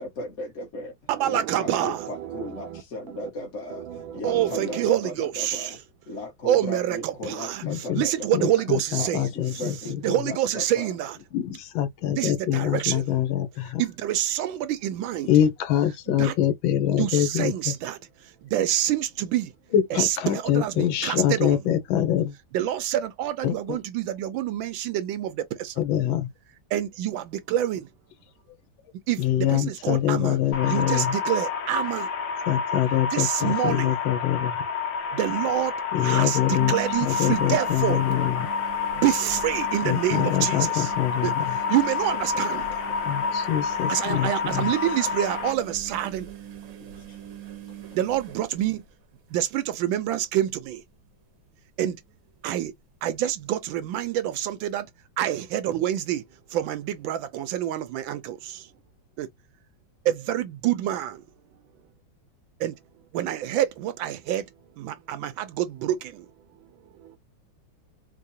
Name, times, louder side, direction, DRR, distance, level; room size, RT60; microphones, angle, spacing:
voice 1, 0.0-0.9 1.2-5.8 6.1-8.6 8.9-11.0 42.3-42.8 44.5-44.9 47.0-47.2, left 1 dB, 45° left, 1.2 m, -37 dB
voice 2, 1.1-2.8 3.1-3.3 3.7-5.8 6.4-9.3 10.0-11.2 12.1-13.2 13.8-15.3 16.1-16.4 17.0-19.5 19.9-21.6 22.5-25.8 26.7-27.9 29.1-30.4 30.7-32.1 33.1-34.0 35.1-38.0 39.0-40.9 41.2-42.7 43.9-46.3 47.9-48.8 49.3-50.8 51.8-52.0 52.4-52.7 53.0-54.9 55.2-56.2 56.5-58.7 59.2-59.3 60.0-61.2 62.6-62.8 63.1-64.5 64.8-66.3 67.0-67.2, right 12 dB, 80° right, 1.3 m, -27 dB
voice 3, 7.6-8.0 8.3-8.4 8.7-9.7 11.3-13.8 15.3-17.5 19.7-22.3 23.4-23.8 25.8-26.3 29.2-31.1 32.5-34.7 35.9-36.7 37.0-38.5 39.8-41.4 43.0-44.7, left 11 dB, 85° left, 1.5 m, -24 dB
sound 1, 30.5-45.5, left 6 dB, 60° left, 1.3 m, -29 dB
sound 2, 35.0-35.1 35.3-35.4 36.3-49.4 49.7-50.2 50.4-50.5 52.4-52.5, right 10 dB, 60° right, 1.0 m, -41 dB
4.6 x 2.2 x 2.7 m
omnidirectional pair, 2.2 m